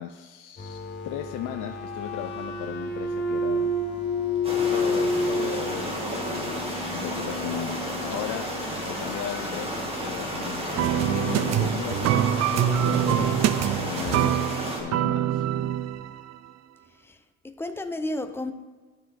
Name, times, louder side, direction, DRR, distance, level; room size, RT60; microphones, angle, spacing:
voice 1, 0.0-3.7 4.7-6.5 6.9-13.3 13.7-15.5, left 11 dB, 80° left, 0.6 m, -36 dB
sound 1, 0.6-13.9, left 2 dB, 35° left, 1.9 m, -32 dB
sound 2, 4.4-14.8, equal, 20° right, 2.4 m, -32 dB
sound 3, 10.8-16.3, right 11 dB, 60° right, 0.5 m, -25 dB
voice 2, 17.0-18.5, left 1 dB, 10° left, 0.6 m, -33 dB
10.0 x 6.3 x 4.2 m
cardioid pair, 90°, 30 cm